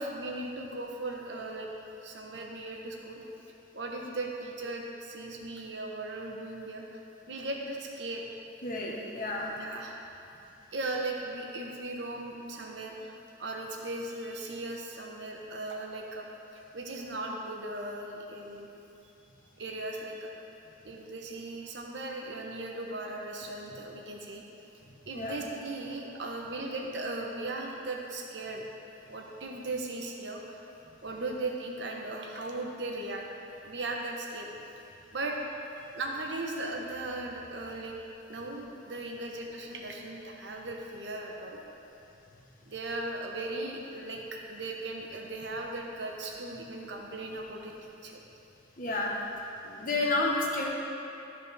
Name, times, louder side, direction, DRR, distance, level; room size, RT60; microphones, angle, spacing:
voice 1, 0.0-1.7 2.0-7.0 7.3-8.2 9.5-10.1 10.7-13.1 13.4-16.3 16.7-18.7 19.6-20.3 20.8-24.4 25.1-28.6 29.1-30.6 31.0-33.2 33.6-34.5 35.1-35.4 35.9-37.9 38.3-41.6 42.7-48.2, right 2 dB, 70° right, 0 dB, 1.0 m, -38 dB
voice 2, 8.6-9.5 25.1-25.4 31.2-31.3 48.8-49.1 49.6-50.6, left 2 dB, 50° left, -2 dB, 1.1 m, -30 dB
13.0 x 4.9 x 3.5 m, 2.8 s
head